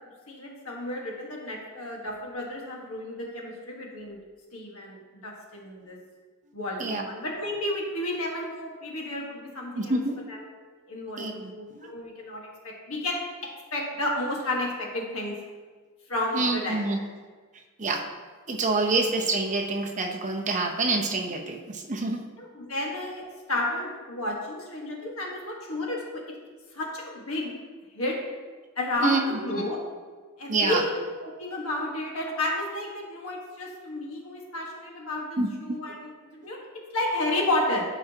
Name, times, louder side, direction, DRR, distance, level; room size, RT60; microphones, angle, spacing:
voice 1, 0.3-4.2 4.5-6.0 6.5-10.0 10.3-10.4 10.9-15.3 16.1-17.1 22.4-23.2 23.5-26.2 26.7-27.5 27.9-28.2 28.8-29.8 30.4-36.6 36.9-37.8, left 1 dB, 70° left, -1 dB, 1.6 m, -32 dB
voice 2, 9.8-10.1 11.2-11.9 16.3-17.0 17.8-18.0 18.5-22.2 29.0-29.2 29.6-29.7 30.5-30.8 35.4-35.5, right 3 dB, 35° right, 2 dB, 0.8 m, -27 dB
12.5 x 4.9 x 2.9 m, 1.4 s
head